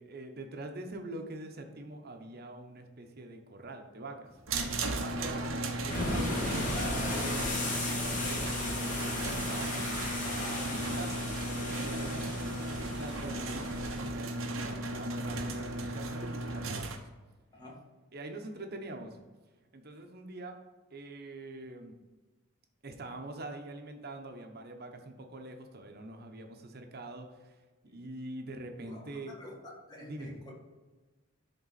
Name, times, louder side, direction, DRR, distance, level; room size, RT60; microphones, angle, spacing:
voice 1, 0.0-4.3 4.8-9.9 10.2-11.3 11.6-17.0 18.1-19.2 19.7-20.6 20.9-22.0 22.8-27.6 27.8-29.3 30.0-30.3, right 2 dB, 50° right, 4 dB, 0.9 m, -44 dB
sound 1, 4.2-8.1, left 1 dB, 65° left, 1.6 m, -50 dB
sound 2, 4.5-14.1, left 2 dB, 40° left, 1.6 m, -36 dB
sound 3, 4.5-17.0, right 2 dB, 85° right, 0.9 m, -36 dB
voice 2, 17.5-17.8 27.9-28.0 28.8-30.5, left 1 dB, 20° left, -3 dB, 1.8 m, -48 dB
11.0 x 3.9 x 4.1 m, 1.3 s
head